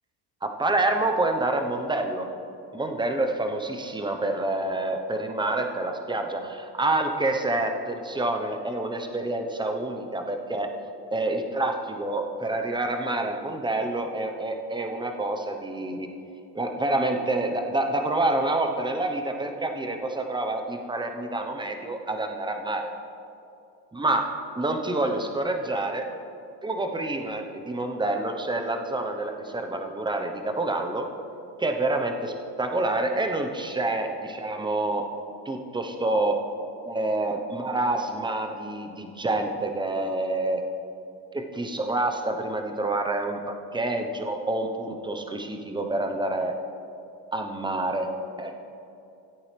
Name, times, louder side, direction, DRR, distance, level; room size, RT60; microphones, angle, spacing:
voice 1, 0.4-2.3 2.7-10.7 11.1-16.1 16.5-22.9 23.9-24.3 24.6-26.1 26.6-31.1 31.6-35.0 35.4-36.4 36.8-40.6 41.3-46.6 47.3-48.1 48.4-48.6, right 2 dB, 10° right, 4 dB, 0.9 m, -27 dB
16.0 x 8.5 x 3.4 m, 2.7 s
supercardioid pair, 100°, 49 cm